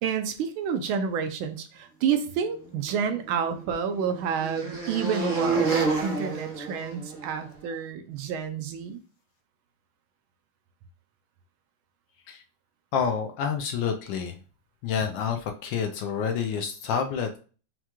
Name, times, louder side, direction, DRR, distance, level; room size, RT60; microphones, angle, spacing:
voice 1, 0.0-9.0, right 7 dB, 80° right, 7 dB, 1.4 m, -29 dB
sound 1, 2.8-7.4, right 4 dB, 50° right, 1.4 m, -30 dB
voice 2, 12.9-14.4 14.8-17.4, left 7 dB, 75° left, 5 dB, 1.2 m, -28 dB
5.9 x 2.2 x 2.9 m, 0.38 s
omnidirectional pair, 2.3 m